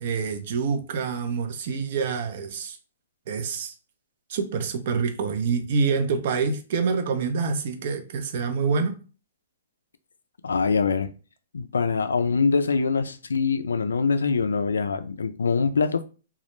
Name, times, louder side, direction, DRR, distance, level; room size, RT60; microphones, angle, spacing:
voice 1, 0.0-2.8 3.3-3.7 4.3-8.9, right 5 dB, 55° right, 0.5 m, -26 dB
voice 2, 10.4-11.1 11.5-16.0, left 5 dB, 85° left, 0.3 m, -24 dB
2.3 x 2.0 x 3.0 m
hypercardioid pair, 130°, 0 cm